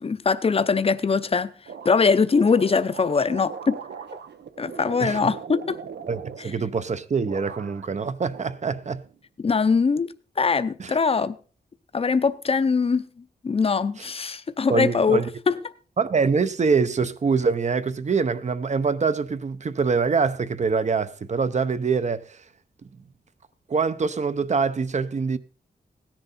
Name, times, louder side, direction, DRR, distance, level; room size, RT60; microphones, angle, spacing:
voice 1, 0.0-1.5 1.8-3.8 4.6-5.8 9.4-10.1 10.4-11.3 11.9-13.0 13.4-15.2 15.5-15.6, left 5 dB, 35° left, 0.6 m, -22 dB
sound 1, 1.7-6.9 7.2-8.0 8.3-9.2, right 7 dB, 85° right, 0.9 m, -40 dB
voice 2, 5.0-5.3 6.1-9.0 10.8-11.0 14.0-14.1 14.7-15.3 16.0-22.4 23.7-25.4, right 5 dB, 45° right, 0.7 m, -24 dB
17.0 x 10.5 x 4.2 m
wide cardioid pair, 170°, 17 cm